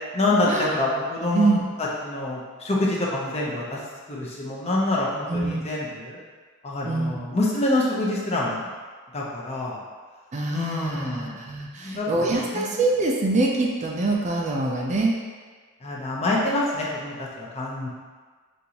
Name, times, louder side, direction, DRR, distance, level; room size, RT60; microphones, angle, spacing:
voice 1, 0.1-1.5 2.0-3.8 4.1-6.2 6.6-8.7 9.1-9.8 10.5-11.3 11.8-12.3 12.5-12.7 15.8-17.9, left 2 dB, 30° left, -5 dB, 0.7 m, -26 dB
voice 2, 5.3-5.7 6.8-7.3 10.3-15.2, right 2 dB, 35° right, -1 dB, 0.4 m, -24 dB
5.3 x 2.6 x 2.9 m, 1.5 s
head